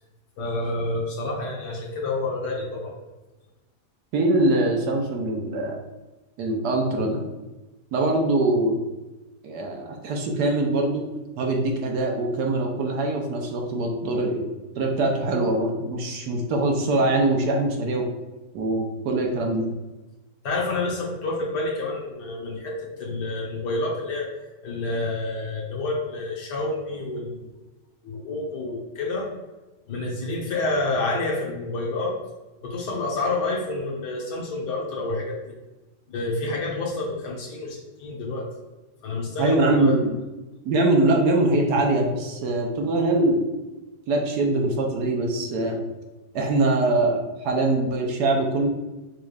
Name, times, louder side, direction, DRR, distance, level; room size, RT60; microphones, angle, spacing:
voice 1, 0.4-3.0 20.4-24.3 24.6-27.4 28.0-29.3 29.9-32.2 32.6-35.5 36.1-38.5 39.0-40.0, left 2 dB, 70° left, -3 dB, 1.6 m, -28 dB
voice 2, 4.1-5.8 6.4-7.2 7.9-8.8 9.4-11.0 11.4-14.4 14.7-18.1 18.5-19.7 39.4-40.2 40.6-43.4 44.1-45.8 46.3-48.7, right 2 dB, 70° right, 1 dB, 1.2 m, -23 dB
6.4 x 3.2 x 2.4 m, 1.1 s
omnidirectional pair, 1.9 m